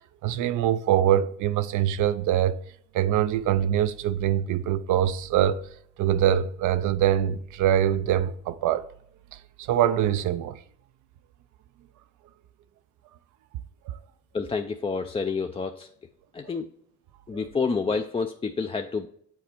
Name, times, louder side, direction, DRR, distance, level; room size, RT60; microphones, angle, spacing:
voice 1, 0.2-2.6 2.9-5.6 6.0-8.9 9.3-10.6 13.9-14.0 17.3-17.4, right 11 dB, 80° right, 0.5 m, -24 dB
voice 2, 14.3-15.9 16.3-16.7 17.3-19.1, left 4 dB, 20° left, 0.4 m, -28 dB
7.6 x 4.2 x 4.4 m
cardioid pair, 90°, 30 cm